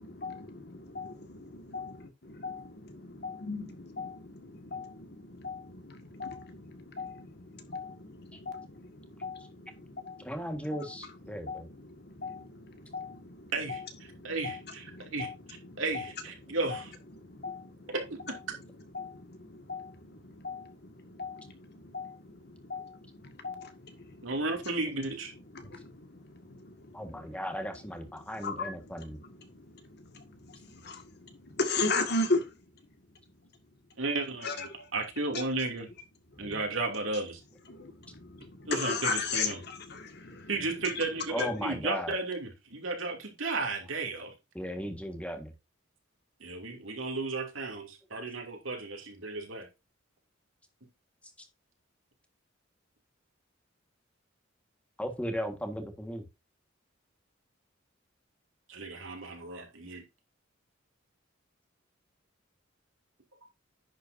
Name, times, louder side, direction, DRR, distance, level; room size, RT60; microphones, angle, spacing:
voice 1, 0.0-16.1 16.4-16.9 17.1-17.9 18.5-24.4 25.4-27.4 27.7-32.5 34.4-34.9 35.3-35.4 36.3-36.6 37.7-41.1 41.4-41.6, left 3 dB, 55° left, 1.9 m, -38 dB
voice 2, 10.2-11.7 26.9-29.2 41.3-42.2 44.5-45.5 55.0-56.2, equal, 5° left, 1.6 m, -36 dB
voice 3, 14.2-15.3 15.8-16.9 18.1-18.4 24.2-25.3 34.0-35.9 36.4-37.4 38.7-39.6 40.5-44.3 46.4-49.7 58.7-60.0, right 3 dB, 80° right, 2.8 m, -34 dB
10.5 x 7.7 x 2.7 m
head